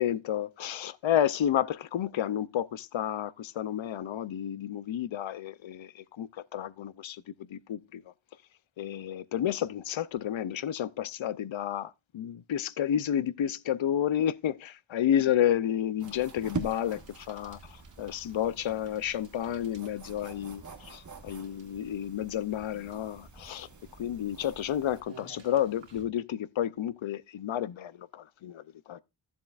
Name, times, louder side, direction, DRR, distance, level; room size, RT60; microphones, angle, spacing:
voice 1, 0.0-8.1 8.8-23.7 24.0-29.0, left 10 dB, 80° left, 0.6 m, -31 dB
sound 1, 16.0-25.0, right 4 dB, 40° right, 1.5 m, -44 dB
Bicycle, 16.0-26.1, right 4 dB, 75° right, 2.7 m, -59 dB
15.0 x 7.4 x 2.4 m
wide cardioid pair, 85°, 46 cm